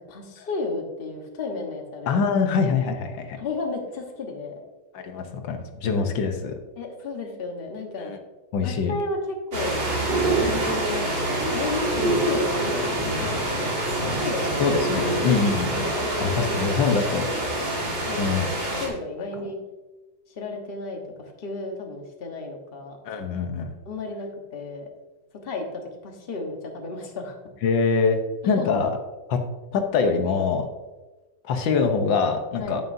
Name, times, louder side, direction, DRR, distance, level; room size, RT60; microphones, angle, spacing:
voice 1, 0.0-2.3 3.4-4.6 6.8-8.1 8.6-9.9 10.3-14.7 16.0-16.6 17.0-17.5 18.1-18.3 18.8-19.6 20.3-23.0 23.8-24.9 25.4-27.4 28.4-28.9 32.6-32.8, left 3 dB, 35° left, 2 dB, 1.3 m, -33 dB
voice 2, 2.1-3.4 4.9-6.5 8.0-8.2 8.5-8.9 14.6-15.9 16.2-17.3 18.2-18.5 23.0-23.7 27.6-28.2 28.5-29.0 29.3-29.4 29.7-30.7 31.5-32.9, left 5 dB, 90° left, 5 dB, 1.7 m, -24 dB
sound 1, 9.5-18.9, right 1 dB, 85° right, 3.0 m, -26 dB
9.6 x 9.2 x 2.7 m, 1.2 s
omnidirectional pair, 2.0 m